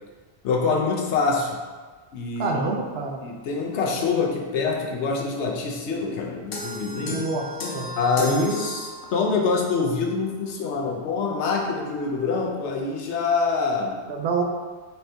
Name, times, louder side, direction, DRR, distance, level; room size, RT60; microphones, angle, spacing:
voice 1, 0.4-1.6 2.1-2.6 3.2-7.2 8.0-14.1, left 4 dB, 90° left, 0 dB, 1.0 m, -25 dB
voice 2, 2.4-3.2 7.1-7.5 7.7-7.9 8.2-8.7 14.1-14.4, right 3 dB, 70° right, 1 dB, 0.8 m, -26 dB
sound 1, 6.5-9.4, left 1 dB, 65° left, 0.8 m, -34 dB
4.4 x 2.7 x 3.2 m, 1.4 s
omnidirectional pair, 1.1 m